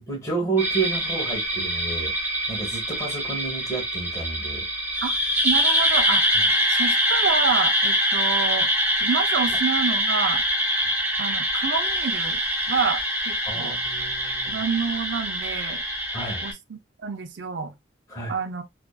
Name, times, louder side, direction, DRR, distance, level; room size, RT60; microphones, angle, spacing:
voice 1, 0.1-2.1 2.5-4.7 13.5-14.6 16.1-16.4 18.1-18.4, right 3 dB, 15° left, 0.9 m, -30 dB
sound 1, 0.6-16.5, equal, 10° right, 0.6 m, -24 dB
voice 2, 5.4-6.2 6.7-8.7 9.0-10.4 11.2-12.4 12.7-13.8 14.5-15.8 16.4-17.7 18.3-18.6, right 5 dB, 70° right, 0.5 m, -28 dB
2.4 x 2.4 x 2.2 m
head